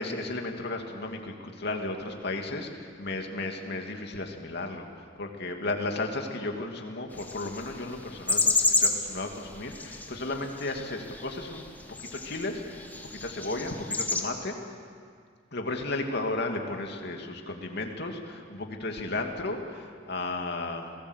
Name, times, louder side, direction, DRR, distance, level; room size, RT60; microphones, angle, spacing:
voice 1, 0.0-11.6 12.2-14.6 15.5-20.9, left 2 dB, 60° left, 3 dB, 2.7 m, -34 dB
sound 1, 7.1-14.2, left 3 dB, 10° left, 2.0 m, -31 dB
29.5 x 19.5 x 8.3 m, 2.1 s
head